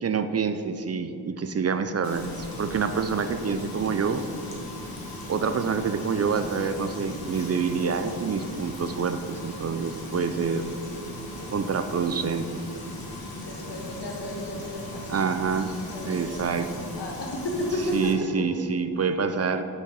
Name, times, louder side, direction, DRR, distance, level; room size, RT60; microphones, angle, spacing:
voice 1, 0.0-4.2 5.3-10.7 11.5-12.6 15.1-15.7 16.1-16.7 17.9-19.6, right 5 dB, 40° right, 9 dB, 0.4 m, -27 dB
Frying (food), 2.0-18.1, left 1 dB, 60° left, 1.5 m, -38 dB
voice 2, 13.4-15.3 15.5-16.5 17.0-18.1, left 1 dB, 85° left, -1 dB, 1.4 m, -33 dB
6.5 x 5.0 x 5.4 m, 2.7 s
cardioid pair, 60°, 41 cm